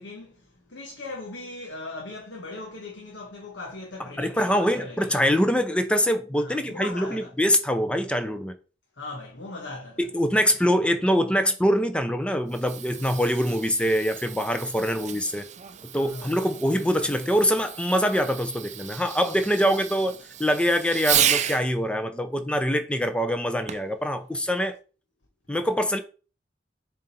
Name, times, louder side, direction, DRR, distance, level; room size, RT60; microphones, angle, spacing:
voice 1, 0.0-5.2 6.4-7.3 9.0-10.1 12.9-13.2 15.9-16.3, left 2 dB, 85° left, 1.4 m, -39 dB
voice 2, 4.2-8.5 10.0-15.5 15.9-20.1 20.4-24.7 25.5-26.0, equal, 5° left, 0.6 m, -24 dB
Fireworks, 12.3-21.7 23.7-24.0 24.7-24.8, right 10 dB, 40° right, 0.5 m, -32 dB
7.1 x 3.9 x 4.2 m
head